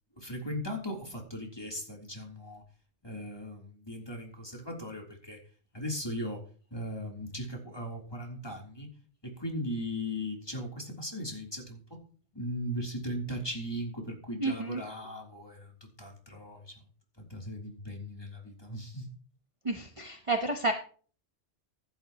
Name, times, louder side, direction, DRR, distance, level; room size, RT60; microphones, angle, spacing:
voice 1, 0.2-2.6 3.0-5.4 5.7-6.4 6.7-8.9 9.2-12.0 12.3-15.7 16.0-16.8 17.2-19.1, equal, 20° left, 0 dB, 3.3 m, -38 dB
voice 2, 14.4-14.8 19.6-20.7, right 2 dB, 30° right, 4 dB, 1.0 m, -30 dB
15.5 x 11.0 x 3.0 m, 0.42 s
omnidirectional pair, 1.2 m